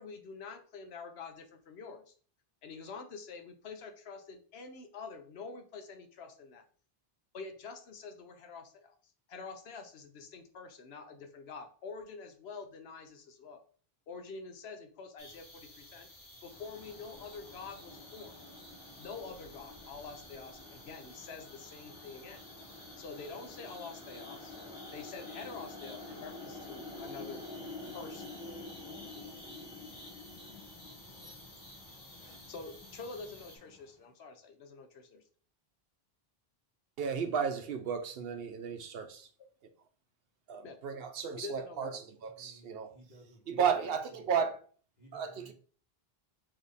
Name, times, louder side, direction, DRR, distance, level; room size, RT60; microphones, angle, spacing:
voice 1, 0.0-2.1 2.6-6.6 7.3-9.0 9.3-13.6 14.1-16.1 16.4-18.3 19.0-22.4 23.0-24.6 24.9-27.4 27.9-28.3 32.5-35.2 40.6-40.8 41.4-42.0 43.5-43.9, left 4 dB, 85° left, 1.0 m, -46 dB
sound 1, 15.2-33.6, left 1 dB, 65° left, 1.4 m, -54 dB
sound 2, 16.5-33.9, left 2 dB, 5° right, 1.2 m, -49 dB
voice 2, 37.0-39.3 40.5-41.9 42.2-42.9 43.5-44.6 45.1-45.5, right 7 dB, 70° right, 0.9 m, -33 dB
voice 3, 42.4-43.6 44.1-44.3 45.0-45.5, right 1 dB, 45° left, 1.7 m, -57 dB
3.6 x 3.3 x 4.0 m
omnidirectional pair, 1.0 m